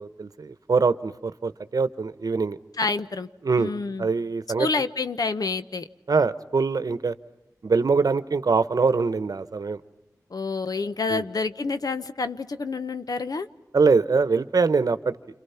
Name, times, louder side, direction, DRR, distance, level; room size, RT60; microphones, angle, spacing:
voice 1, 0.0-2.6 3.4-3.7 4.0-4.7 6.1-7.1 7.6-9.8 11.1-11.2 13.7-15.1, right 4 dB, 65° right, 13 dB, 1.0 m, -23 dB
voice 2, 2.8-3.3 3.6-4.1 4.6-5.8 10.3-13.5, left 4 dB, 70° left, 11 dB, 1.0 m, -28 dB
28.5 x 27.5 x 5.8 m, 0.94 s
wide cardioid pair, 95°, 7 cm